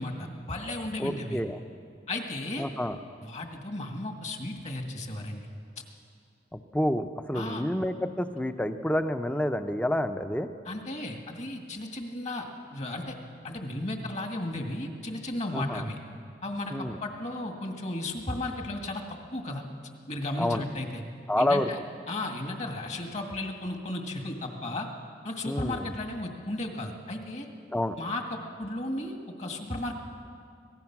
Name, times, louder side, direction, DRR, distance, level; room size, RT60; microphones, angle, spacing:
voice 1, 0.0-1.4 2.1-2.7 3.2-5.5 7.3-7.6 10.7-13.2 13.4-16.0 16.4-19.0 19.3-19.6 20.1-21.0 21.4-21.8 22.1-24.9 25.2-27.5 28.0-30.0, left 1 dB, 40° left, 3 dB, 2.0 m, -34 dB
voice 2, 1.0-1.6 2.6-3.0 6.5-10.5 15.5-15.8 16.7-17.0 20.4-20.6 21.3-21.7 25.4-25.9 27.7-28.0, left 1 dB, 10° left, 9 dB, 0.7 m, -28 dB
25.5 x 18.0 x 6.1 m, 2.3 s
head